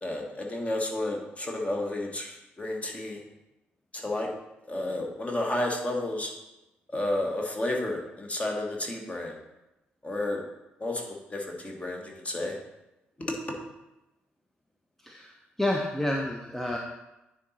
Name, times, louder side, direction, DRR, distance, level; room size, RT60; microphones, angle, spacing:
voice 1, 0.0-3.2 3.9-4.3 4.7-6.3 6.9-9.4 10.0-10.4 10.8-12.5 13.2-13.6, left 1 dB, 25° left, 0 dB, 1.5 m, -31 dB
voice 2, 15.6-16.8, left 1 dB, 5° left, 0 dB, 0.8 m, -29 dB
9.5 x 4.0 x 4.2 m, 0.95 s
figure-of-eight pair, 40°, 6 cm